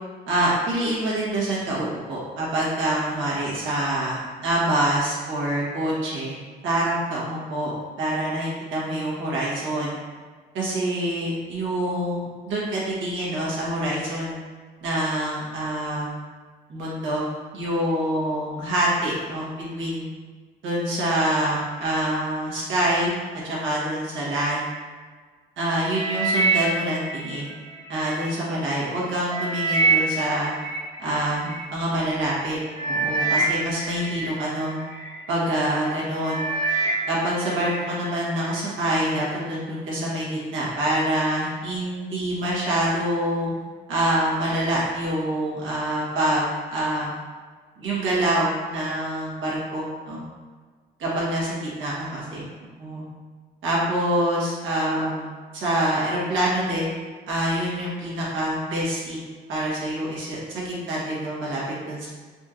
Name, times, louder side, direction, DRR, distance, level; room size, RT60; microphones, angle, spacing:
voice 1, 0.3-6.4 6.6-7.7 8.0-10.0 10.5-14.4 14.8-16.1 16.7-17.3 17.5-20.1 20.6-24.7 25.6-27.5 27.9-30.5 31.0-32.6 32.8-34.8 35.3-36.4 37.1-43.5 43.9-47.1 47.8-50.2 51.0-52.5 52.8-53.0 53.6-55.3 55.5-57.0 57.3-59.2 59.5-62.1, right 1 dB, 75° right, -6 dB, 1.4 m, -26 dB
sound 1, 25.9-28.3 28.8-31.6 32.3-32.5 32.7-35.1 35.6-35.9 36.2-37.7 38.1-38.6 39.2-39.3, right 3 dB, 55° left, 1.1 m, -26 dB
4.2 x 3.0 x 2.5 m, 1.5 s
cardioid pair, 90°, 20 cm